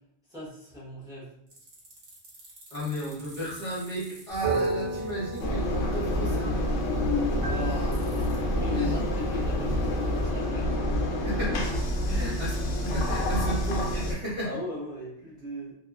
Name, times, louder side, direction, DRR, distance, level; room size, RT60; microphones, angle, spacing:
voice 1, 0.3-1.3 7.4-8.2 8.5-11.0 12.1-12.2 14.4-15.7, equal, 5° right, -8 dB, 0.8 m, -39 dB
sound 1, 1.5-5.4 7.9-8.4, right 1 dB, 60° right, 1.1 m, -50 dB
voice 2, 2.7-6.6 7.4-8.1 8.6-9.1 11.2-11.7 12.0-14.5, right 1 dB, 30° left, -11 dB, 0.8 m, -34 dB
sound 2, 4.3-10.3, right 2 dB, 35° right, 0.7 m, -35 dB
Engine, 5.4-14.1, left 1 dB, 85° left, 0.9 m, -27 dB
2.8 x 2.3 x 2.3 m, 0.74 s
omnidirectional pair, 1.2 m